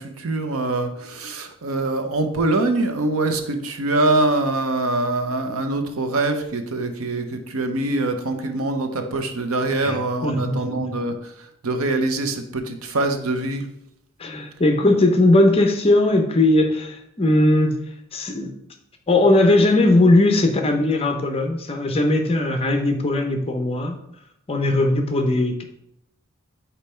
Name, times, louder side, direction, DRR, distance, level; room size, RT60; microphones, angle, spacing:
voice 1, 0.0-13.7, right 2 dB, 75° right, 6 dB, 0.7 m, -24 dB
voice 2, 10.2-11.0 14.2-17.8 18.1-18.5 19.1-24.0 24.5-25.6, left 2 dB, 25° left, 5 dB, 0.6 m, -19 dB
5.3 x 4.4 x 4.3 m, 0.77 s
head